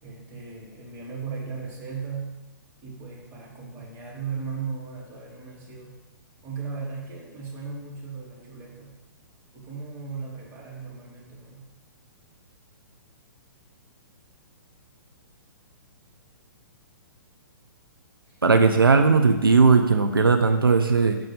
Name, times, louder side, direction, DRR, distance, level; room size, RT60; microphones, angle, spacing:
voice 1, 0.0-2.4 2.8-6.0 6.4-9.0 9.5-11.7 18.3-18.4, right 5 dB, 20° right, -4 dB, 3.0 m, -37 dB
voice 2, 18.4-21.2, right 4 dB, 90° right, 6 dB, 0.8 m, -18 dB
12.5 x 4.2 x 5.2 m, 1.1 s
figure-of-eight pair, 125°, 12 cm